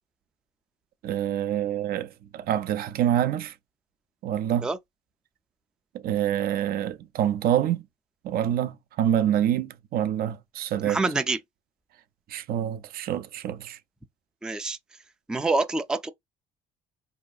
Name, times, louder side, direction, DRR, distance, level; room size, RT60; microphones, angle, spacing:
voice 1, 1.0-3.5 4.2-4.7 5.9-7.8 8.2-11.0 12.3-13.8, right 11 dB, 60° right, 0.5 m, -26 dB
voice 2, 10.8-11.4 14.4-14.8 15.3-16.1, right 3 dB, 5° right, 0.3 m, -26 dB
4.6 x 2.8 x 2.3 m
cardioid pair, 110°, 17 cm